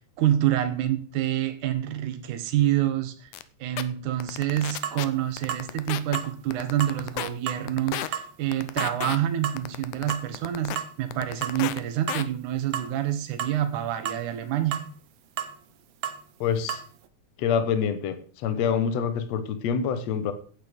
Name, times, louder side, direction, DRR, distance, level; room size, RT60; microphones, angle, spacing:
voice 1, 0.2-3.3 3.6-14.8, right 12 dB, 85° right, 8 dB, 2.6 m, -27 dB
sound 1, 3.3-3.4 3.8-3.9 4.2-5.0 5.4-6.2 6.5-7.3 7.7-8.1 8.5-9.2 9.6-10.8 11.1-11.8 12.1-12.2, left 13 dB, 85° left, 2.2 m, -32 dB
sound 2, 4.8-5.0 5.5-5.7 6.1-6.3 6.8-7.0 7.5-7.6 8.1-8.3 8.8-9.0 9.4-9.6 10.1-10.3 10.8-10.9 11.4-11.7 12.1-12.3 12.7-12.9 13.4-13.6 14.1-14.2 14.7-14.9 15.4-15.6 16.0-16.2 16.7-16.9, right 9 dB, 70° right, 1.7 m, -32 dB
voice 2, 16.4-16.8 17.4-18.2 18.4-20.3, left 7 dB, 65° left, 10 dB, 2.2 m, -26 dB
11.0 x 8.6 x 5.2 m, 0.43 s
omnidirectional pair, 3.4 m